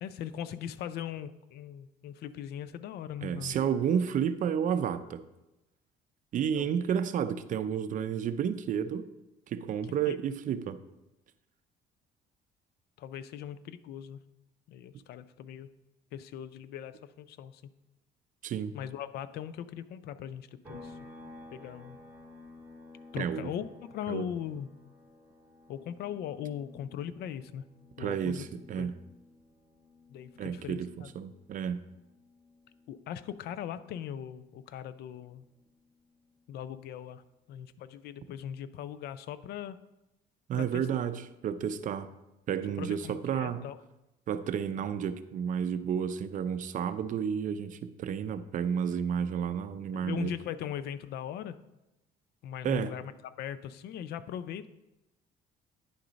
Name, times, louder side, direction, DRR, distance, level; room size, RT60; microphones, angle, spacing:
voice 1, 0.0-3.6 6.5-6.7 10.1-10.2 13.0-14.2 14.7-15.7 16.1-17.6 18.7-21.0 21.5-22.0 23.1-24.7 25.7-27.6 28.0-28.5 28.8-28.9 30.1-31.1 32.9-35.5 36.5-37.2 37.5-39.8 40.5-40.9 42.8-43.8 49.9-51.6 52.4-53.1 53.4-54.7, left 9 dB, 70° left, 14 dB, 0.4 m, -39 dB
voice 2, 3.2-5.2 6.3-9.0 9.5-10.8 18.4-18.8 23.2-23.5 24.1-24.2 28.0-29.0 30.4-30.9 31.2-31.8 40.5-42.1 42.5-43.7 44.3-50.3 52.6-52.9, right 8 dB, 50° right, 12 dB, 0.5 m, -31 dB
sound 1, 20.6-34.2 34.5-36.7, left 2 dB, 10° right, 2.3 m, -54 dB
9.7 x 3.8 x 5.1 m, 0.96 s
cardioid pair, 110°, 17 cm